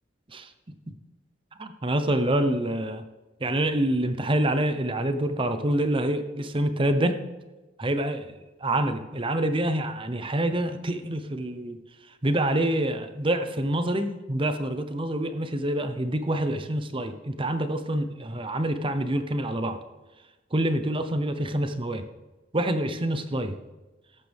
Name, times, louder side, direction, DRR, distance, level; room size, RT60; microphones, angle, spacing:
voice 1, 1.6-3.0 3.4-7.2 7.8-8.3 8.6-11.8 12.2-19.8 20.5-22.0 22.5-23.5, right 1 dB, 30° right, 9 dB, 0.9 m, -26 dB
14.0 x 12.0 x 3.6 m, 1.1 s
head